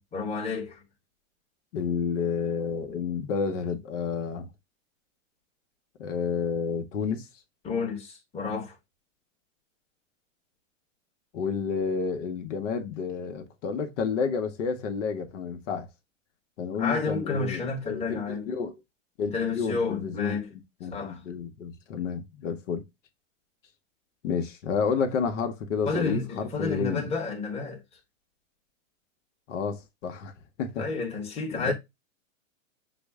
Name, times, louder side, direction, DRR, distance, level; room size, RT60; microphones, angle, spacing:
voice 1, 0.1-0.8 7.6-8.8 16.8-18.5 19.3-20.5 20.9-21.2 25.8-27.8 30.8-31.7, left 4 dB, 15° left, 1.1 m, -30 dB
voice 2, 1.7-4.5 6.0-7.3 11.3-15.9 16.6-18.7 19.2-20.4 20.8-22.8 24.2-27.0 29.5-30.3 30.6-30.8 31.6-31.7, left 6 dB, 65° left, 1.0 m, -30 dB
6.1 x 2.1 x 3.4 m
hypercardioid pair, 130°, 39 cm